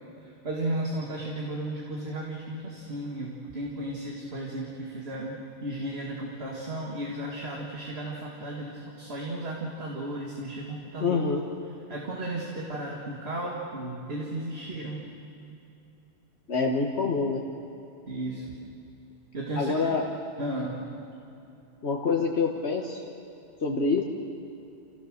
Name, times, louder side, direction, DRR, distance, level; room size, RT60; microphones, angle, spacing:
voice 1, 0.2-11.2 11.9-15.1 18.1-18.5 19.3-19.9 20.4-20.8, right 1 dB, 60° right, -2 dB, 2.4 m, -34 dB
voice 2, 11.0-11.4 16.5-17.4 19.6-20.0 21.8-23.0 23.6-24.0, left 4 dB, 65° left, 0 dB, 1.6 m, -26 dB
28.5 x 16.5 x 6.5 m, 2.8 s
omnidirectional pair, 1.2 m